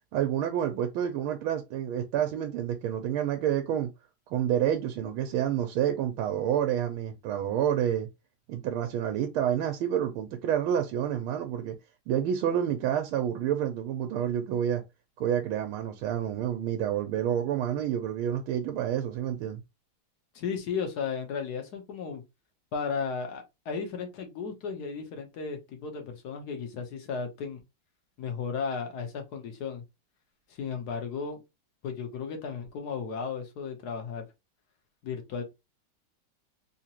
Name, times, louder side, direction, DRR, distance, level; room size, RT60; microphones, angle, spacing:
voice 1, 0.1-3.9 4.3-8.1 8.5-11.8 12.1-14.8 15.2-19.6, right 10 dB, 85° right, 1.4 m, -28 dB
voice 2, 20.3-22.2 22.7-27.6 28.2-29.8 30.5-31.4 31.8-34.3 35.0-35.4, left 5 dB, 60° left, 1.2 m, -34 dB
3.7 x 2.8 x 2.8 m
omnidirectional pair, 2.2 m